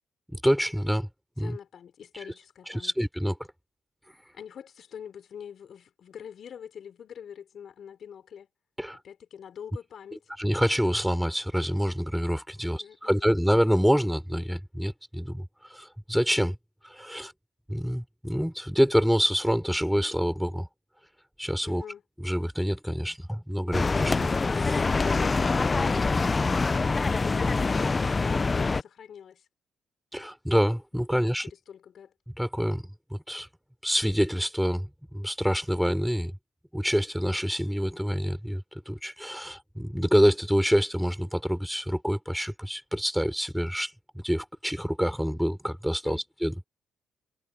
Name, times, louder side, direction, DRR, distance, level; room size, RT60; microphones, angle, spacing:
voice 1, 0.3-1.1 1.4-1.6 2.1-2.3 2.7-3.4 8.8-9.0 10.4-16.5 16.8-17.3 17.7-20.7 21.4-21.8 22.2-24.8 30.1-31.5 32.4-33.5 33.8-36.3 36.7-46.7, equal, ahead, 4.7 m, -27 dB
voice 2, 1.4-2.9 4.3-8.5 9.0-10.2 12.6-13.4 21.6-22.0 25.0-29.4 31.1-31.3 31.7-32.1 46.0-46.2, left 8 dB, 60° left, 6.3 m, -45 dB
sound 1, 23.7-28.8, left 3 dB, 25° left, 0.7 m, -25 dB
cardioid pair, 90°, 0 cm